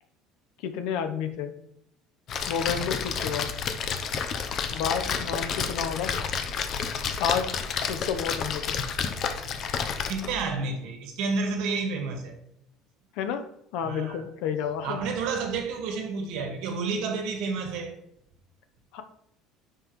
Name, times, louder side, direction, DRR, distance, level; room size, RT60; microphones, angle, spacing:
voice 1, 0.6-1.5 2.5-3.5 4.7-6.1 7.2-7.5 7.9-8.8 13.1-13.4 13.7-15.0 18.9-19.0, left 7 dB, 75° left, 0.8 m, -30 dB
Splash splatter, 2.3-10.4, left 6 dB, 40° left, 0.7 m, -30 dB
voice 2, 10.1-12.3 13.8-14.2 14.8-17.9, right 4 dB, 70° right, 1.6 m, -30 dB
9.4 x 5.8 x 3.1 m
cardioid pair, 155°, 0 cm